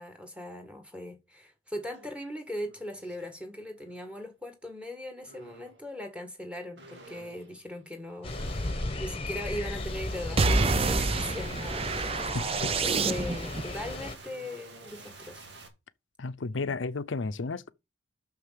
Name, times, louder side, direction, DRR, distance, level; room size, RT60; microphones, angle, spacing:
voice 1, 0.0-12.3 12.6-15.5, left 1 dB, 5° right, 1.8 m, -40 dB
sound 1, 1.9-2.1 2.5-3.3 3.8-4.2 5.3-5.9 6.8-15.7, right 2 dB, 65° right, 2.1 m, -50 dB
sound 2, 8.2-14.2, left 2 dB, 30° left, 1.1 m, -35 dB
sound 3, 10.4-13.6, right 4 dB, 30° right, 0.5 m, -27 dB
voice 2, 12.3-12.7 16.2-17.7, left 3 dB, 80° left, 0.7 m, -33 dB
6.6 x 6.6 x 6.6 m
head